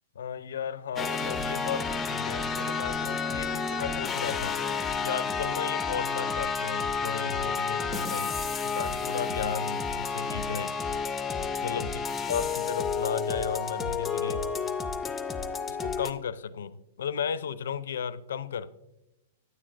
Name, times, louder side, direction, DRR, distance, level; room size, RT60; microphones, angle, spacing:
voice 1, 0.2-4.6 5.0-8.3 8.6-10.8 11.6-12.0 12.3-14.4 15.7-18.7, left 7 dB, 75° left, 0.4 m, -34 dB
sound 1, 1.0-16.1, left 5 dB, 15° left, 0.5 m, -31 dB
9.5 x 8.7 x 2.5 m
hypercardioid pair, 115°, 0 cm